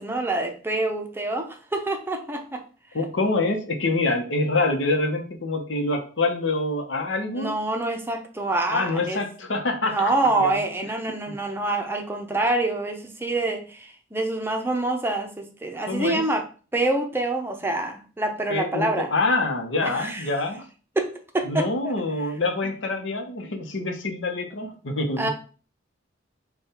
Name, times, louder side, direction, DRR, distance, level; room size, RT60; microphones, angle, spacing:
voice 1, 0.0-2.6 7.3-9.2 9.8-16.4 16.7-19.1 19.8-20.3 21.0-21.9 22.6-22.7 25.2-25.3, right 2 dB, 10° right, 3 dB, 0.6 m, -26 dB
voice 2, 2.9-7.5 8.7-10.6 11.3-11.4 15.9-16.2 18.5-20.6 21.4-25.3, left 2 dB, 80° left, 4 dB, 0.9 m, -26 dB
5.3 x 2.3 x 4.2 m, 0.38 s
head